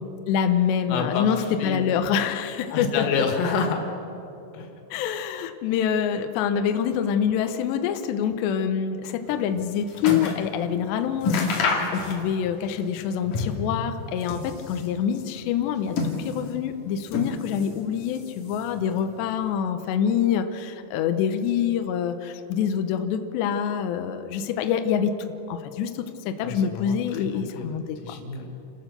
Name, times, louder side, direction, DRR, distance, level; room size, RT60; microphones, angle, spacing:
voice 1, 0.3-3.0 4.9-25.2 25.5-28.0, left 8 dB, 75° left, 7 dB, 2.8 m, -26 dB
voice 2, 0.9-1.9 2.7-3.8 4.5-4.7 26.4-28.5, left 5 dB, 90° left, 4 dB, 4.4 m, -28 dB
sound 1, 9.3-10.5 10.8-10.9 11.2-12.5 12.8-13.7 14.1-15.0 15.6-16.6 17.1-17.8 18.1-18.8 19.5-19.6, left 4 dB, 50° left, 3.3 m, -28 dB
30.0 x 13.0 x 6.8 m, 2.9 s
omnidirectional pair, 5.6 m